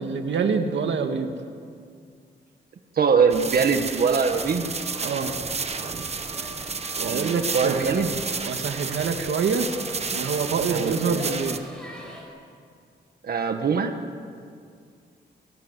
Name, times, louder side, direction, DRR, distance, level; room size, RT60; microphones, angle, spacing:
voice 1, 0.0-1.3 5.0-5.3 7.0-8.1 8.4-9.7 10.1-11.6, right 5 dB, 85° right, 5 dB, 1.9 m, -26 dB
voice 2, 2.9-4.7 7.1-8.1 10.7-11.2 13.2-13.9, right 5 dB, 55° right, 6 dB, 1.5 m, -22 dB
sound 1, 3.3-11.6, right 5 dB, 35° right, 1.3 m, -31 dB
sound 2, 3.7-12.2, equal, 5° left, 6.4 m, -43 dB
29.5 x 18.0 x 8.3 m, 2.2 s
wide cardioid pair, 155°, 19 cm